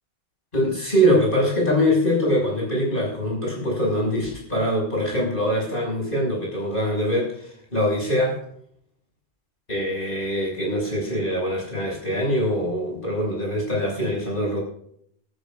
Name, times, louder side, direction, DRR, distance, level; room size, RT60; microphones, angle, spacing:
voice 1, 0.5-8.4 9.7-14.6, equal, 55° left, -2 dB, 6.7 m, -23 dB
17.5 x 16.0 x 2.5 m, 0.66 s
omnidirectional pair, 1.1 m